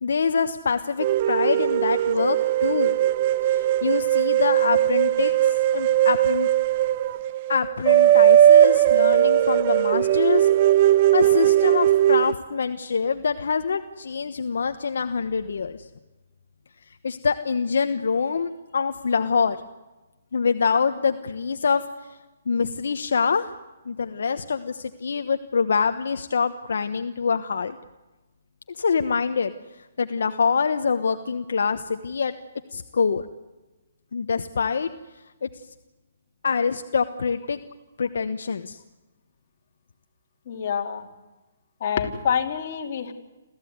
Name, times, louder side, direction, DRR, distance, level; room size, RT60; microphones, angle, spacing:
voice 1, 0.0-3.0 3.4-6.5 7.5-10.5 10.8-15.9 17.0-19.6 20.3-21.8 22.5-23.5 23.9-27.8 28.7-29.5 30.0-32.3 32.7-33.2 34.1-34.9 35.4-35.5 36.4-37.6 38.0-38.8, left 5 dB, 75° left, 8 dB, 1.1 m, -25 dB
sound 1, 1.0-12.3, right 12 dB, 35° right, 0.7 m, -19 dB
voice 2, 40.5-41.1 41.8-43.1, left 7 dB, 45° left, 3 dB, 3.1 m, -26 dB
27.5 x 15.0 x 9.5 m, 1.1 s
hypercardioid pair, 155°, 0 cm